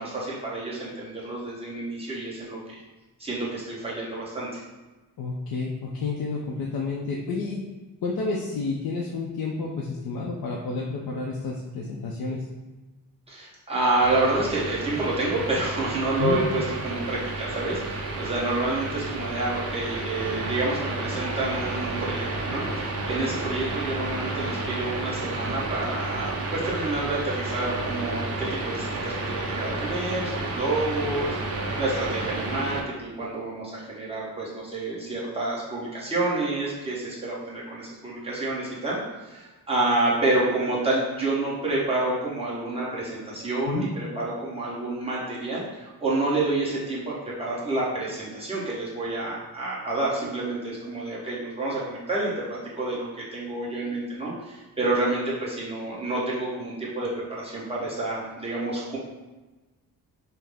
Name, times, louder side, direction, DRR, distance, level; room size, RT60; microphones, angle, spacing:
voice 1, 0.0-2.8 3.2-4.6 13.3-59.0, right 2 dB, 15° right, -7 dB, 0.9 m, -29 dB
voice 2, 5.2-7.6 8.0-12.4 16.2-16.4 43.7-43.9, left 4 dB, 75° left, -2 dB, 0.6 m, -30 dB
sound 1, 14.0-32.8, right 2 dB, 40° right, 0.6 m, -31 dB
5.6 x 2.0 x 3.4 m, 1.2 s
wide cardioid pair, 175°, 37 cm